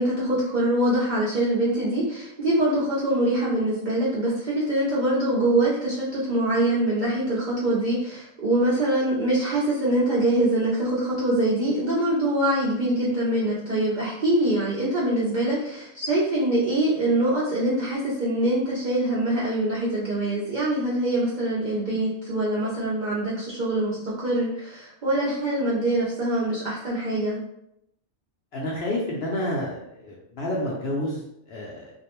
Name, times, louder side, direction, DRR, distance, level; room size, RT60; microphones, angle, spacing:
voice 1, 0.0-27.4, right 1 dB, 60° right, -7 dB, 0.4 m, -24 dB
voice 2, 28.5-31.9, left 1 dB, 65° left, -3 dB, 0.6 m, -29 dB
2.4 x 2.0 x 2.9 m, 0.79 s
omnidirectional pair, 1.4 m